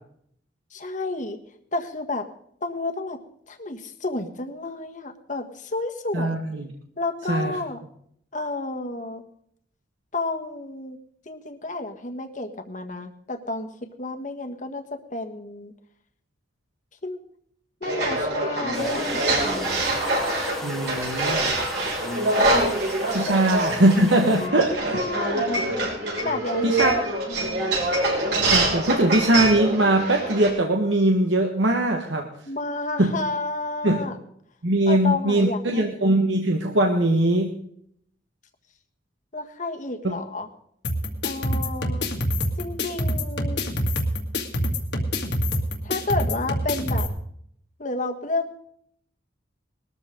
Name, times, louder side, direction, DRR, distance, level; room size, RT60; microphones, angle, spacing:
voice 1, 0.7-1.4 1.7-2.3 2.6-3.2 3.5-6.4 7.0-7.8 8.3-9.2 10.1-11.0 11.2-15.7 17.0-17.2 17.8-19.8 23.3-23.4 24.4-24.6 24.9-25.5 26.2-26.9 27.3-27.8 32.5-34.2 34.9-35.9 39.3-40.5 41.2-42.1 42.6-43.6 45.8-47.1 47.8-48.6, left 2 dB, 45° left, 5 dB, 1.6 m, -31 dB
voice 2, 6.1-6.7 7.3-7.6 20.6-21.5 23.1-25.0 26.6-26.9 28.5-32.3 33.0-33.1 33.8-34.0 34.6-37.5 40.0-40.1, right 1 dB, 90° right, 2 dB, 1.6 m, -21 dB
sound 1, 17.8-30.5, right 2 dB, 65° right, 6.0 m, -25 dB
sound 2, 18.7-24.5, equal, ahead, 1.4 m, -35 dB
sound 3, 40.8-47.1, equal, 70° left, 2.2 m, -26 dB
20.5 x 13.5 x 3.9 m, 0.67 s
head